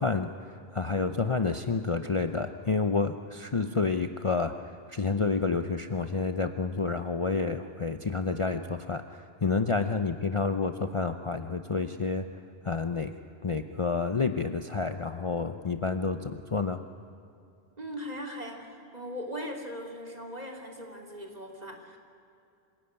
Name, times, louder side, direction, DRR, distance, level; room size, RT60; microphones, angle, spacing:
voice 1, 0.0-12.3 12.6-13.1 13.4-16.8, left 4 dB, 35° left, 8 dB, 0.7 m, -29 dB
voice 2, 17.8-22.0, equal, 40° right, 2 dB, 3.0 m, -39 dB
26.0 x 16.5 x 9.9 m, 2.7 s
omnidirectional pair, 1.1 m